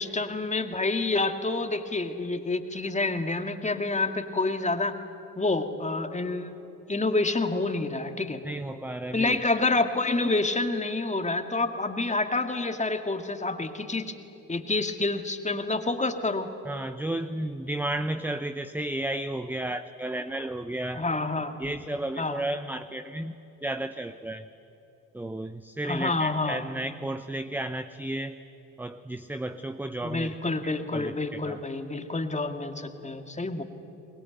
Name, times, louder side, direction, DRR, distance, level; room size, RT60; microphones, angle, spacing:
voice 1, 0.0-5.0 5.4-6.5 6.9-8.4 9.1-14.1 14.5-16.5 20.9-21.6 22.2-22.4 25.9-26.6 30.0-33.6, left 3 dB, 15° left, 6 dB, 2.0 m, -28 dB
voice 2, 8.4-9.4 16.6-21.0 21.6-23.3 23.6-24.4 25.1-28.4 28.8-30.3 30.9-31.6, right 1 dB, 5° right, 10 dB, 0.7 m, -33 dB
23.5 x 21.5 x 9.2 m, 2.9 s
figure-of-eight pair, 55°, 48 cm